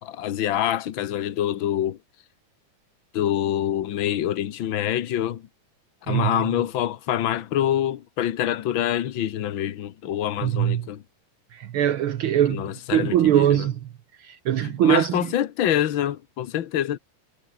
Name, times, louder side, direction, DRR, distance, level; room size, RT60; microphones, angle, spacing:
voice 1, 0.0-2.0 3.1-5.4 6.1-11.0 12.5-13.7 14.6-17.0, left 11 dB, 70° left, 1.2 m, -26 dB
voice 2, 6.1-6.4 10.4-10.9 11.5-12.6 12.9-13.8 14.2-15.3, right 11 dB, 75° right, 1.2 m, -22 dB
omnidirectional pair, 3.6 m